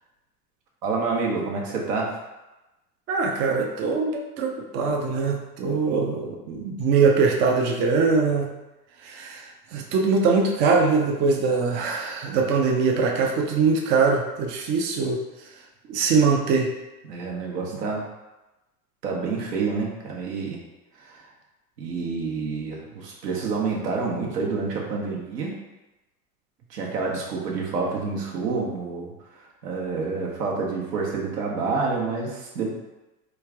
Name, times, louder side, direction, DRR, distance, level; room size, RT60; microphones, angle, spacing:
voice 1, 0.8-2.1 17.0-18.0 19.0-20.6 21.1-21.2 21.8-25.5 26.7-29.1 29.6-32.7, right 4 dB, 80° right, -2 dB, 1.0 m, -28 dB
voice 2, 3.1-8.5 9.0-15.2 15.9-16.7, right 4 dB, 25° right, 1 dB, 0.3 m, -22 dB
3.2 x 2.4 x 3.3 m, 1.0 s
hypercardioid pair, 95°, 48 cm